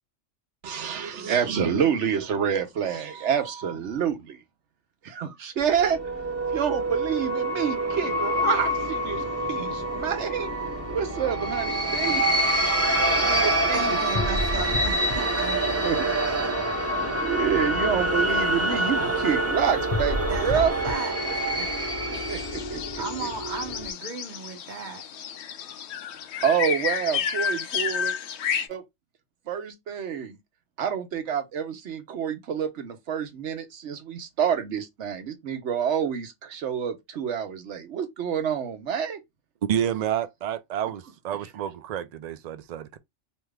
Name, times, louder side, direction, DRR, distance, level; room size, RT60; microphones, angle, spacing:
voice 1, 0.6-4.4 5.0-6.0 6.5-10.5 10.9-12.2 13.0-14.0 15.1-15.2 15.8-16.1 17.0-20.7 21.6-21.7 22.1-23.3 26.4-28.1 28.7-28.8 29.5-30.4 30.8-39.2, right 8 dB, 70° right, 1.0 m, -28 dB
sound 1, 5.6-23.9, left 2 dB, 40° left, 0.5 m, -35 dB
sound 2, 5.8-22.6, right 1 dB, 20° right, 0.4 m, -26 dB
voice 2, 13.7-16.5 16.8-16.9 20.3-21.1 23.0-25.1, right 4 dB, 45° right, 1.0 m, -36 dB
sound 3, 22.1-28.7, left 7 dB, 70° left, 0.8 m, -31 dB
voice 3, 39.6-43.0, right 10 dB, 90° right, 0.3 m, -29 dB
3.3 x 2.9 x 2.2 m
omnidirectional pair, 1.3 m